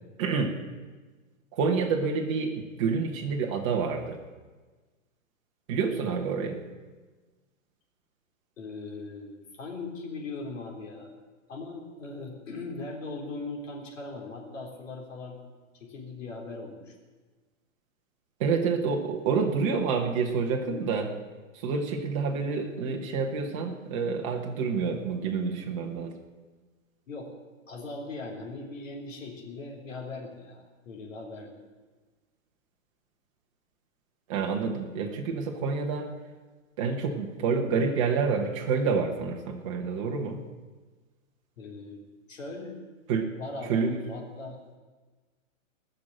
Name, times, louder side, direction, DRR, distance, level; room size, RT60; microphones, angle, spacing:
voice 1, 0.2-0.5 1.5-2.5 2.8-4.2 5.7-6.6 18.4-21.1 21.6-26.1 34.3-36.1 36.8-40.4 43.1-43.2 43.7-44.0, right 5 dB, 25° right, 1 dB, 1.3 m, -28 dB
voice 2, 8.6-11.1 11.5-15.4 15.7-16.9 27.1-27.3 27.7-31.5 41.6-42.0 42.3-42.8 43.3-44.8, left 3 dB, 70° left, -1 dB, 3.9 m, -39 dB
18.0 x 6.7 x 8.9 m, 1.3 s
hypercardioid pair, 170°, 40 cm